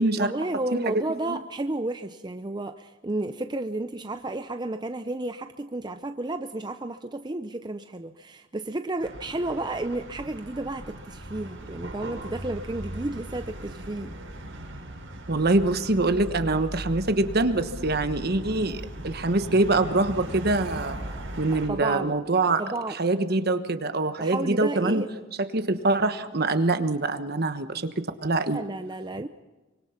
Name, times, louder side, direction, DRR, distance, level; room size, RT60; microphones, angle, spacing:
voice 1, 0.2-14.1 21.5-22.1 22.6-23.0 24.2-25.1 28.5-29.3, right 2 dB, 20° right, 8 dB, 0.6 m, -32 dB
sound 1, 9.0-21.7, right 1 dB, 75° right, 5.9 m, -38 dB
voice 2, 15.3-21.0 21.4-22.6 23.0-25.0 25.5-27.9 28.2-28.6, right 2 dB, 50° right, 9 dB, 1.3 m, -24 dB
24.5 x 24.0 x 5.9 m, 1.2 s
head